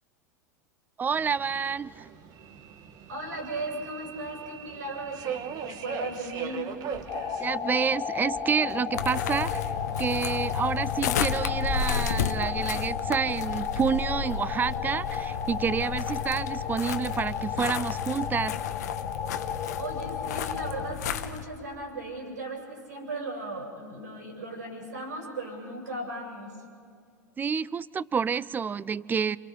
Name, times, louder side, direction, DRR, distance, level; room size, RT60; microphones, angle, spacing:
voice 1, 1.0-2.1 7.4-9.7 10.0-18.6 27.4-29.4, right 6 dB, 20° right, 21 dB, 0.5 m, -29 dB
Subway metro underground, 1.1-11.6, right 7 dB, 40° right, 1.5 m, -41 dB
voice 2, 3.1-6.7 19.8-26.5, right 2 dB, 80° right, -2 dB, 6.8 m, -37 dB
sound 1, 7.1-20.9, left 7 dB, 40° left, 1.5 m, -34 dB
sound 2, 8.9-21.4, left 7 dB, 65° left, 1.0 m, -32 dB
28.5 x 27.5 x 3.8 m, 2.2 s
figure-of-eight pair, 85°, 10 cm